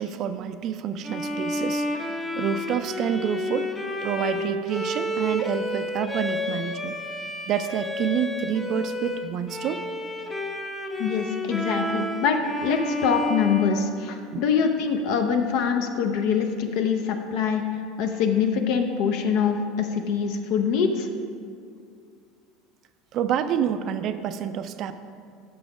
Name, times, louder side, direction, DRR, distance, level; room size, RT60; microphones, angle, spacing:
voice 1, 0.0-1.9 2.4-3.7 4.0-7.0 7.5-9.8 14.3-14.4 23.1-24.9, right 9 dB, 50° right, 10 dB, 0.3 m, -28 dB
Bowed string instrument, 1.0-14.5, left 1 dB, 10° left, 0.6 m, -31 dB
voice 2, 11.0-17.6 18.0-21.1, left 6 dB, 65° left, 5 dB, 0.5 m, -24 dB
6.2 x 5.7 x 5.0 m, 2.3 s
supercardioid pair, 120°, 0 cm